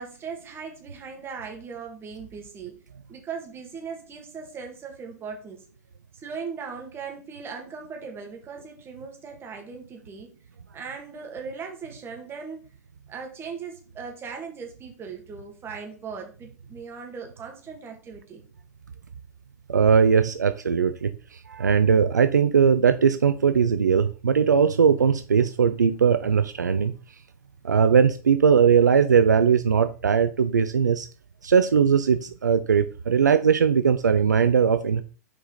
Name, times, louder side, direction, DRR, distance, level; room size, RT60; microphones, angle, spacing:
voice 1, 0.0-2.8 3.1-5.7 6.1-10.3 10.7-12.6 13.1-18.4, right 5 dB, 25° right, 2 dB, 2.2 m, -38 dB
voice 2, 19.7-21.1 21.5-26.9 27.6-31.1 31.4-35.0, right 6 dB, 75° right, 10 dB, 0.5 m, -20 dB
6.2 x 4.9 x 4.0 m, 0.36 s
figure-of-eight pair, 95°, 10 cm